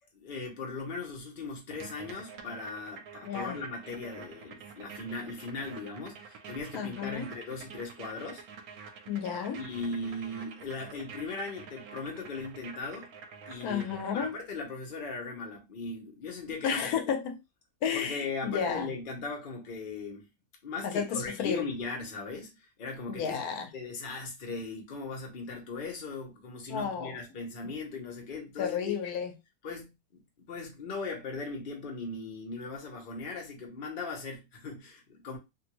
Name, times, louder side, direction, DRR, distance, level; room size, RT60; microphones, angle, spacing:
voice 1, 0.2-8.4 9.5-13.1 13.5-16.8 17.9-20.3 20.6-22.5 22.8-23.4 23.7-28.9 29.6-29.9 30.4-35.4, left 3 dB, 40° left, 0.9 m, -38 dB
sound 1, 1.7-14.5, right 5 dB, 80° right, 1.1 m, -48 dB
voice 2, 3.2-3.6 6.7-7.3 9.1-9.6 13.6-14.3 16.6-17.3 17.8-18.9 20.8-21.6 23.1-23.7 26.7-27.2 28.6-29.3, left 7 dB, 85° left, 1.1 m, -32 dB
2.8 x 2.5 x 3.0 m
omnidirectional pair, 1.5 m